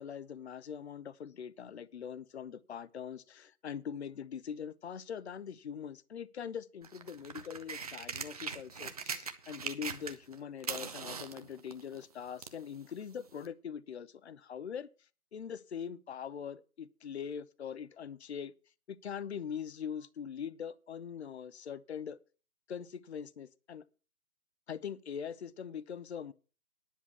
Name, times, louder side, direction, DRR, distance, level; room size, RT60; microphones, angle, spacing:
voice 1, 0.0-14.9 15.3-18.5 18.9-22.2 22.7-23.8 24.7-26.3, left 7 dB, 45° left, 0.7 m, -42 dB
sound 1, 6.8-10.3 10.6-12.6 13.4-13.5, right 5 dB, 25° right, 0.7 m, -41 dB
10.5 x 6.3 x 8.4 m
figure-of-eight pair, 155°, 44 cm